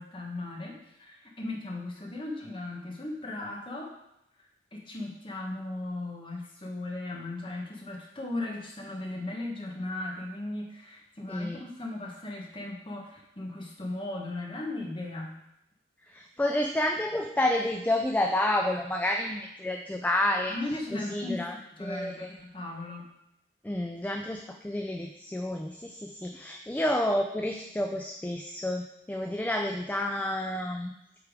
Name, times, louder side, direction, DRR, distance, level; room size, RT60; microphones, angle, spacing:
voice 1, 0.0-4.0 4.4-15.4 20.5-23.1, left 2 dB, 30° left, -1 dB, 1.1 m, -37 dB
voice 2, 11.3-11.6 16.1-20.5 20.9-21.5 21.8-22.3 23.6-30.9, left 1 dB, 10° left, 3 dB, 0.3 m, -29 dB
8.0 x 3.6 x 5.0 m, 0.83 s
head